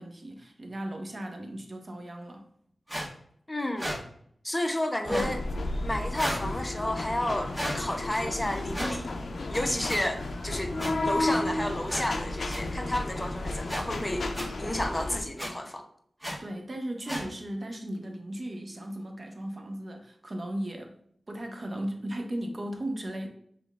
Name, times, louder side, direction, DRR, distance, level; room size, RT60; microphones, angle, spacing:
voice 1, 0.0-2.5 16.4-20.9 21.3-23.3, right 1 dB, 45° right, 4 dB, 0.8 m, -36 dB
sound 1, 2.9-3.1 3.8-4.0 5.0-5.3 6.1-6.4 7.5-7.8 8.7-9.0 9.9-10.0 10.8-10.9 11.9-12.1 12.5-12.6 13.7-13.8 14.3-14.5 15.4-15.5 16.2-16.4 17.1-17.2, equal, 20° right, 1.3 m, -33 dB
voice 2, 3.5-4.0 4.4-5.4 5.8-9.1 9.5-10.7 11.0-14.3 14.6-15.8, left 1 dB, 15° left, 5 dB, 0.6 m, -31 dB
sound 2, 5.1-15.2, left 2 dB, 75° left, 0.4 m, -33 dB
Sink (filling or washing), 10.2-15.4, right 1 dB, 65° right, 1.2 m, -51 dB
5.0 x 3.4 x 2.3 m, 0.65 s
wide cardioid pair, 60°, 0 cm